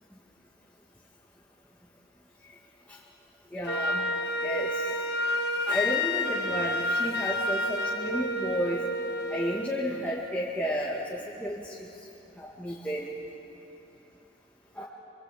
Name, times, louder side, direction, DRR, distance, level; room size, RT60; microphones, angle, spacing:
voice 1, 3.5-4.1 4.4-4.9 5.7-8.8 9.3-11.9 12.4-13.1 14.8-14.9, equal, 10° left, -5 dB, 1.9 m, -32 dB
Wind instrument woodwind instrument, 3.6-9.7, left 1 dB, 60° left, 1.7 m, -29 dB
26.0 x 24.0 x 8.5 m, 2.9 s
head